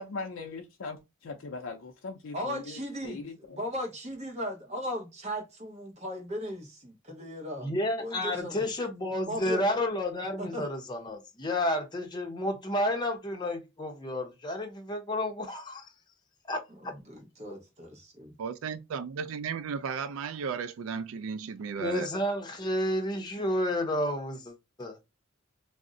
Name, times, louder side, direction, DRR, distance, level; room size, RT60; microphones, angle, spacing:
voice 1, 0.0-1.0 1.2-3.6, left 3 dB, 75° left, 0.5 m, -40 dB
voice 2, 2.3-3.3 3.5-7.7 8.0-8.7 9.3-9.6 10.4-10.6 16.8-18.4, equal, 35° right, 0.8 m, -37 dB
voice 3, 7.6-15.9 16.5-16.6 21.8-25.0, left 1 dB, 20° left, 0.6 m, -31 dB
voice 4, 18.4-22.1, right 6 dB, 80° right, 0.3 m, -34 dB
2.5 x 2.0 x 3.7 m
head